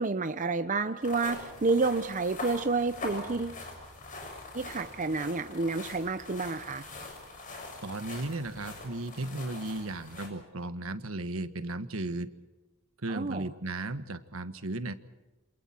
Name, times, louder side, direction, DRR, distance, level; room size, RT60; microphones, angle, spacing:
voice 1, 0.0-3.6 4.5-6.8 13.1-13.5, right 3 dB, 35° right, 9 dB, 0.7 m, -30 dB
sound 1, 1.0-10.3, left 2 dB, 40° left, 6.6 m, -43 dB
voice 2, 7.8-12.3 13.0-14.9, right 2 dB, 70° right, 10 dB, 1.4 m, -35 dB
28.5 x 27.0 x 4.5 m, 1.1 s
head